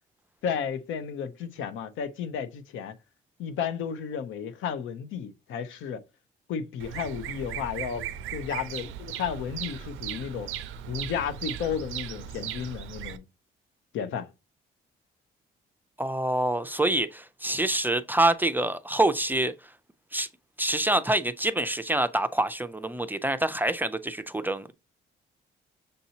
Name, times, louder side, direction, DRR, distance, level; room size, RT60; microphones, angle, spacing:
voice 1, 0.4-2.9 3.4-6.0 6.5-8.1 8.3-10.5 10.9-13.2 13.9-14.3, left 7 dB, 85° left, 0.6 m, -33 dB
Bird vocalization bird call bird song, 6.8-13.2, right 10 dB, 85° right, 0.5 m, -37 dB
voice 2, 16.0-19.5 20.1-20.3 20.6-24.7, right 1 dB, 10° right, 0.3 m, -26 dB
6.5 x 2.7 x 2.8 m
cardioid pair, 90°, 20 cm